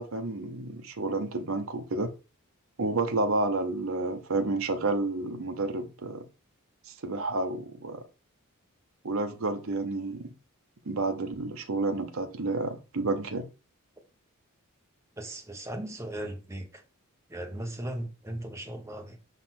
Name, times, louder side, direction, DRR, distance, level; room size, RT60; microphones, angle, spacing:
voice 1, 0.0-2.1 2.8-6.2 6.9-8.0 9.0-10.3 10.9-13.4, right 2 dB, 65° right, 0.8 m, -30 dB
voice 2, 15.2-16.8 17.3-19.2, right 1 dB, 15° right, 1.0 m, -37 dB
5.6 x 4.1 x 4.2 m
head